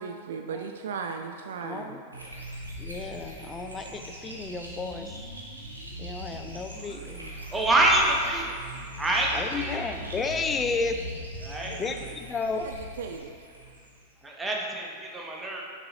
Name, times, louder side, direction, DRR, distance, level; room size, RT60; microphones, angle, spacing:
voice 1, 0.0-1.9 13.0-13.3, right 5 dB, 60° right, 5 dB, 0.3 m, -35 dB
voice 2, 1.6-2.0 2.8-5.3 6.0-7.3 9.3-11.0 11.7-12.7, left 4 dB, 20° left, 6 dB, 0.4 m, -33 dB
sound 1, 2.1-14.1, equal, 80° right, 0.9 m, -40 dB
voice 3, 7.5-8.6 9.0-9.8 11.4-11.8 14.2-15.6, right 1 dB, 10° right, -1 dB, 0.8 m, -26 dB
6.6 x 4.2 x 3.8 m, 2.1 s
figure-of-eight pair, 90°, 0 cm